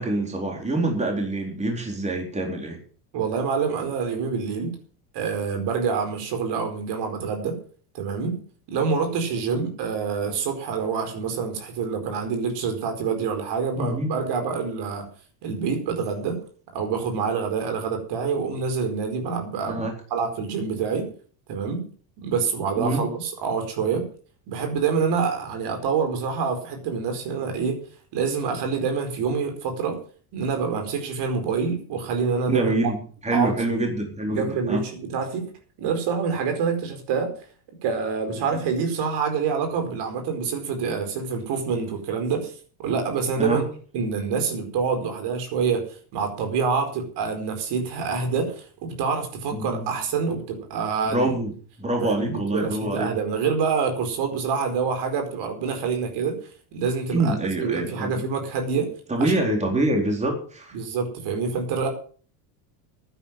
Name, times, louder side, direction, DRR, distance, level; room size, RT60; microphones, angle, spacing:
voice 1, 0.0-2.8 9.5-9.6 13.8-14.1 19.7-19.9 22.8-23.0 32.5-34.8 43.4-43.6 49.5-49.8 51.1-51.5 51.8-53.1 57.1-58.2 59.1-60.8, right 2 dB, 15° right, 2 dB, 4.1 m, -25 dB
voice 2, 3.1-4.7 5.1-7.6 7.9-8.4 8.7-15.1 15.4-16.4 16.7-19.8 20.1-21.1 21.5-21.9 22.2-24.1 24.5-27.8 28.1-30.0 30.3-32.9 33.3-33.9 34.3-35.4 35.8-37.3 37.8-42.5 42.8-43.6 43.9-51.3 52.0-56.4 56.7-58.9 59.2-59.3 60.7-61.9, right 5 dB, 55° right, 5 dB, 4.8 m, -26 dB
11.5 x 10.0 x 7.5 m, 0.43 s
supercardioid pair, 105°, 48 cm